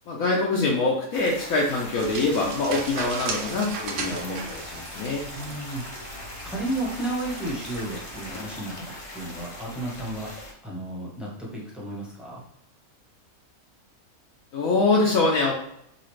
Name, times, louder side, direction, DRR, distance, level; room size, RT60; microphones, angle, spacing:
voice 1, 0.1-5.3 14.5-15.5, left 3 dB, 75° left, -2 dB, 1.0 m, -24 dB
sound 1, 1.1-10.5, left 1 dB, 50° left, 0.4 m, -40 dB
sound 2, 2.0-8.3, right 4 dB, 90° right, 1.1 m, -37 dB
voice 2, 5.3-12.4, right 1 dB, ahead, -5 dB, 0.8 m, -33 dB
4.0 x 2.4 x 3.1 m, 0.77 s
omnidirectional pair, 1.6 m